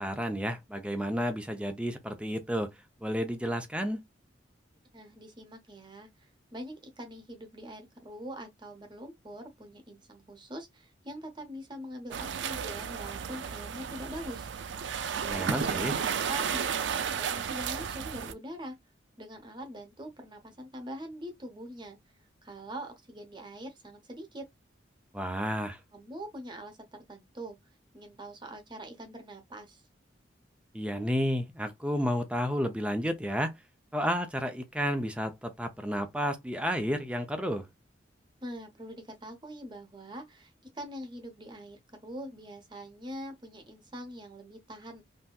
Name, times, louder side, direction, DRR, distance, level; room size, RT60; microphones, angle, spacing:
voice 1, 0.0-2.7 3.0-4.0 15.3-15.9 25.1-25.8 30.7-33.5 33.9-37.7, equal, 5° right, 0.5 m, -31 dB
voice 2, 4.9-14.5 15.6-18.7 19.2-22.0 22.4-24.4 25.9-27.6 27.9-29.8 38.4-45.0, equal, 25° right, 0.9 m, -43 dB
sound 1, 12.1-18.3, right 7 dB, 75° right, 0.4 m, -33 dB
3.3 x 2.7 x 2.3 m
head